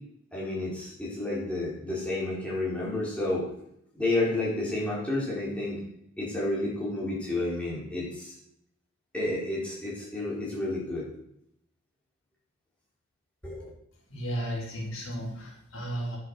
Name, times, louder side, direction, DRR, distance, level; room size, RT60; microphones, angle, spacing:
voice 1, 0.3-3.4 3.9-5.8 6.2-8.3 9.1-11.0 13.4-13.7, left 2 dB, 5° left, -6 dB, 4.8 m, -30 dB
voice 2, 14.1-16.2, right 1 dB, 80° left, -3 dB, 4.7 m, -34 dB
10.0 x 8.0 x 6.5 m, 0.73 s
head